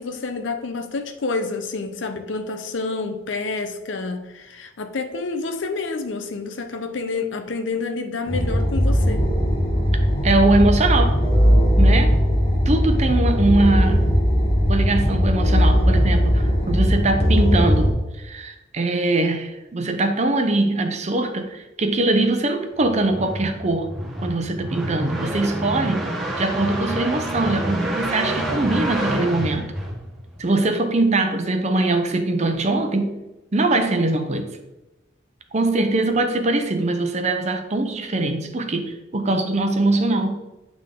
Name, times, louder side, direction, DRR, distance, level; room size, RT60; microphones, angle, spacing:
voice 1, 0.0-9.2, left 3 dB, 80° left, 7 dB, 0.7 m, -28 dB
sound 1, 8.3-17.9, equal, 35° left, 1.2 m, -18 dB
voice 2, 10.2-11.2 11.8-12.1 12.7-14.1 14.7-23.9 24.2-29.7 30.4-33.2 33.5-34.5 35.5-40.4, right 2 dB, 40° right, 7 dB, 0.7 m, -22 dB
sound 2, 22.8-30.4, right 1 dB, ahead, 1.2 m, -27 dB
8.8 x 3.6 x 3.7 m, 1.0 s
head